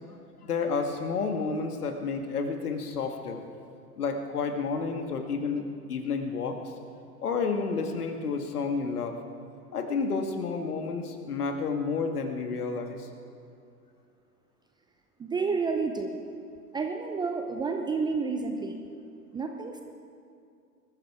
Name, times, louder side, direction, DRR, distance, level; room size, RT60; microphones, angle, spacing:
voice 1, 0.4-3.4 4.0-6.6 7.2-9.2 9.7-13.1, left 4 dB, 65° left, 5 dB, 2.1 m, -30 dB
voice 2, 15.2-16.2 16.7-18.8 19.3-19.8, right 4 dB, 10° right, 4 dB, 0.6 m, -30 dB
21.0 x 13.5 x 4.9 m, 2.5 s
figure-of-eight pair, 105°, 48 cm